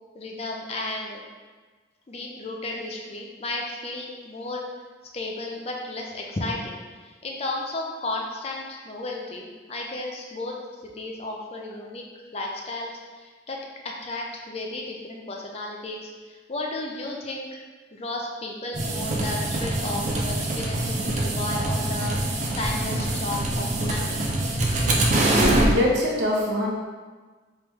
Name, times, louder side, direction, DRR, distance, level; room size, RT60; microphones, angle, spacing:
voice 1, 0.1-1.2 2.1-4.7 5.1-6.8 7.2-10.6 10.9-12.0 12.3-12.9 13.2-13.6 14.0-17.6 17.9-22.2 22.6-24.2, left 2 dB, 35° left, 0 dB, 0.4 m, -33 dB
sound 1, 18.7-25.7, right 1 dB, 40° right, 0.4 m, -24 dB
voice 2, 25.3-26.7, left 1 dB, 75° right, -2 dB, 0.7 m, -23 dB
3.4 x 3.2 x 3.0 m, 1.4 s
head